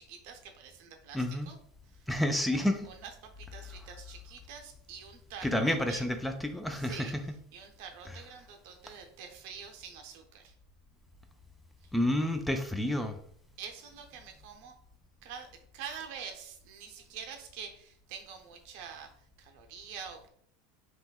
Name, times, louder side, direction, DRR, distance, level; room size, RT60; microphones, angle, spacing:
voice 1, 0.0-1.6 1.8-2.1 2.5-6.1 6.7-7.1 7.5-10.5 11.8-11.9 13.6-14.7 15.2-15.5 15.7-20.3, right 7 dB, 65° right, 4 dB, 0.6 m, -46 dB
voice 2, 1.1-1.5 2.1-2.9 5.4-7.1 11.9-13.2, left 1 dB, 5° left, 6 dB, 0.4 m, -29 dB
3.3 x 3.0 x 2.3 m, 0.63 s
hypercardioid pair, 85°, 0 cm